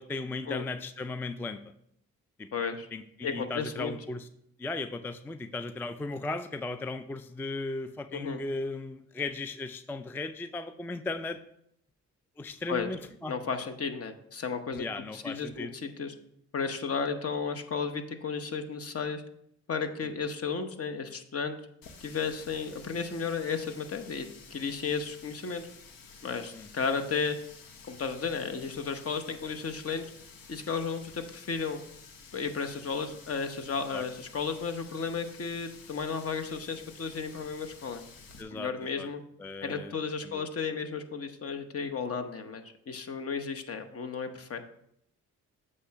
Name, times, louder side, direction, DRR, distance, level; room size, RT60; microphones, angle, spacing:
voice 1, 0.0-1.6 2.4-2.5 2.9-4.3 4.6-11.4 12.4-13.4 14.7-15.7 26.5-26.7 33.9-34.0 38.4-39.1 39.4-39.9 40.2-40.4, left 3 dB, 5° left, 11 dB, 0.3 m, -36 dB
voice 2, 2.5-2.9 3.2-3.9 8.1-8.4 12.7-12.9 13.3-14.9 15.1-16.1 16.5-19.2 19.7-21.6 22.0-25.7 26.2-27.4 27.9-30.1 30.5-31.8 32.3-38.0 38.5-39.2 39.6-44.6, left 5 dB, 45° left, 7 dB, 0.9 m, -33 dB
Water tap faucet, 21.8-38.4, left 5 dB, 80° left, 1.0 m, -52 dB
8.0 x 3.2 x 5.7 m, 0.73 s
supercardioid pair, 65°, 33 cm